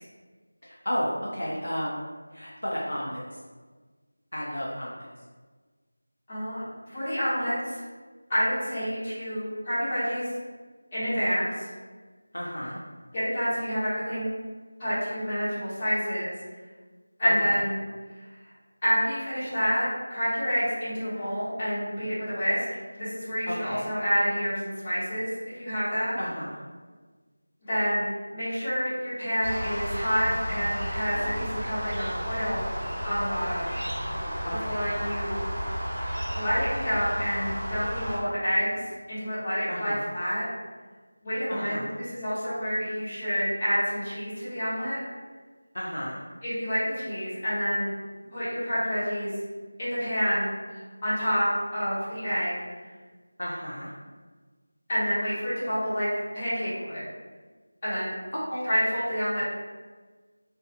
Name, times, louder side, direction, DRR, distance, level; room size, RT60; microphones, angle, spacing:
voice 1, 0.6-2.0 2.3-3.4 4.3-5.1 12.3-12.8 17.2-17.6 23.5-23.9 26.2-26.6 34.4-35.0 39.7-40.1 41.5-41.9 45.7-46.2 53.4-53.9 58.5-58.7, equal, 75° left, -5 dB, 0.5 m, -33 dB
voice 2, 6.3-6.6 6.9-7.8 8.3-10.3 10.9-11.7 13.1-14.3 14.8-16.3 17.2-17.7 18.8-22.6 22.9-26.2 27.7-32.7 33.0-33.8 34.6-35.4 36.3-38.8 39.1-40.4 41.2-45.0 46.4-47.9 48.3-49.3 49.8-51.5 51.7-52.5 54.9-56.1 56.3-57.0 57.8-58.2 58.6-59.5, equal, 25° left, -14 dB, 1.3 m, -28 dB
sound 1, 29.4-38.2, equal, 45° right, 1.0 m, -32 dB
2.4 x 2.4 x 2.5 m, 1.4 s
figure-of-eight pair, 170°, 0 cm